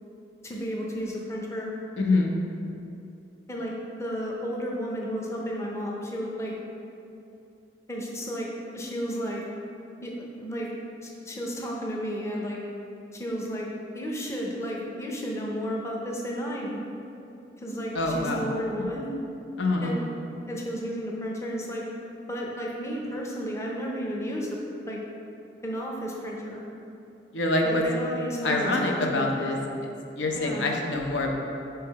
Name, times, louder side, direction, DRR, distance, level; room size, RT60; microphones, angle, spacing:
voice 1, 0.4-1.7 3.5-6.5 7.9-8.5 8.7-9.4 10.0-10.7 11.0-12.6 13.1-13.7 13.9-16.8 17.6-19.1 19.8-20.1 20.5-21.9 22.3-24.6 24.9-25.0 25.6-26.6 27.6-29.5 30.4-30.6, equal, 15° left, -2 dB, 0.6 m, -32 dB
voice 2, 2.0-2.3 17.9-18.5 19.6-19.9 27.3-27.8 28.4-29.6 30.2-31.3, left 2 dB, 80° left, 1 dB, 0.7 m, -25 dB
4.7 x 4.6 x 4.6 m, 2.7 s
head